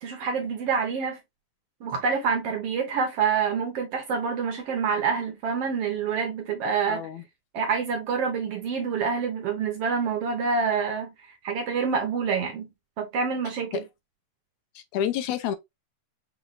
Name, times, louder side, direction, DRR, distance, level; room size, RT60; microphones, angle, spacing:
voice 1, 0.0-1.2 1.8-7.0 7.5-12.7 13.0-13.8, right 5 dB, 65° right, 1.6 m, -27 dB
voice 2, 6.9-7.2 13.7-13.8 14.8-15.6, left 10 dB, 85° left, 2.0 m, -29 dB
5.8 x 3.1 x 2.5 m
omnidirectional pair, 3.5 m